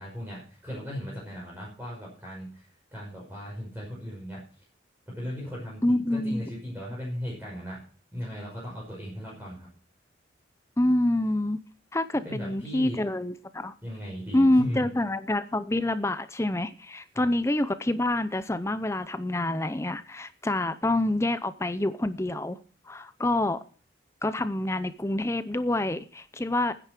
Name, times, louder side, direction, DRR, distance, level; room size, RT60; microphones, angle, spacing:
voice 1, 0.0-2.6 2.9-4.4 5.1-7.8 8.1-9.7 12.2-13.0 13.8-14.9 17.1-17.3, equal, 10° right, 5.7 m, -37 dB
voice 2, 5.8-6.5 10.8-11.6 11.9-13.7 14.3-22.6 22.9-23.6 24.2-26.7, left 1 dB, 15° left, 0.6 m, -27 dB
10.0 x 10.0 x 7.6 m
head